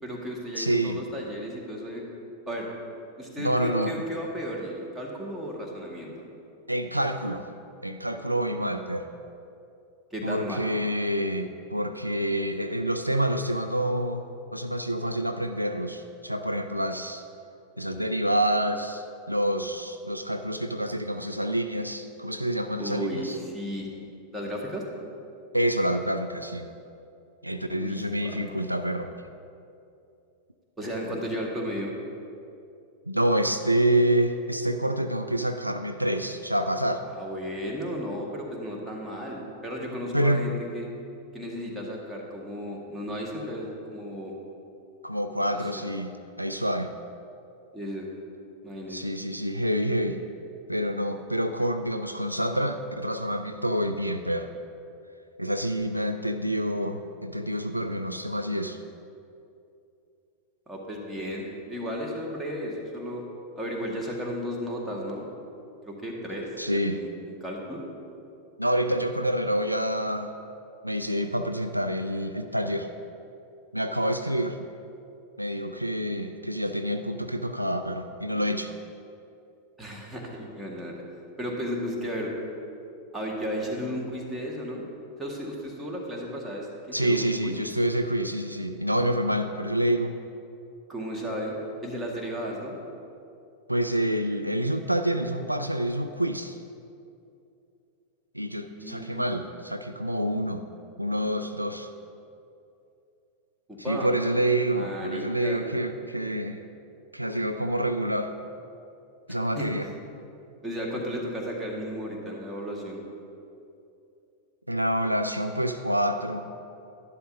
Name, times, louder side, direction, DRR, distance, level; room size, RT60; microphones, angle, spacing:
voice 1, 0.0-2.0 2.5-2.7 3.2-6.1 10.1-10.6 22.8-23.9 24.3-24.8 27.8-28.5 30.8-31.9 37.1-40.9 41.3-44.3 45.6-45.8 47.7-48.1 48.6-49.1 60.7-63.2 63.5-65.3 65.8-67.8 79.8-80.9 81.4-82.3 83.1-84.8 85.2-87.6 90.9-92.7 98.7-99.3 103.7-104.1 104.7-105.6 109.6-109.7 110.6-113.0, equal, 10° right, -2 dB, 1.7 m, -34 dB
voice 2, 0.6-1.0 3.4-3.9 6.7-7.5 7.8-9.1 10.2-17.3 17.8-23.4 25.5-26.7 27.4-29.1 33.1-37.0 40.1-40.5 45.0-46.9 48.9-50.2 50.7-54.5 55.4-58.8 66.6-67.0 68.6-70.3 70.8-72.9 73.7-74.6 75.4-78.7 86.9-90.1 93.7-96.6 98.3-100.6 101.0-101.9 103.8-106.6 107.1-108.3 109.3-109.9 114.7-116.5, right 1 dB, 90° right, 8 dB, 0.3 m, -27 dB
11.5 x 11.0 x 2.7 m, 2.7 s
figure-of-eight pair, 90°, 0 cm